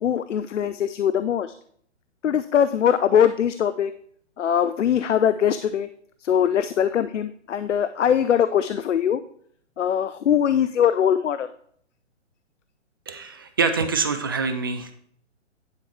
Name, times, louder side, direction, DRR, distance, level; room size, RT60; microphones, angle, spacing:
voice 1, 0.0-1.5 2.2-3.9 4.4-5.9 6.2-9.2 9.8-11.5, left 9 dB, 80° left, 12 dB, 0.6 m, -21 dB
voice 2, 13.1-14.9, right 5 dB, 20° right, 9 dB, 0.3 m, -25 dB
10.5 x 5.3 x 4.4 m, 0.62 s
figure-of-eight pair, 130°, 36 cm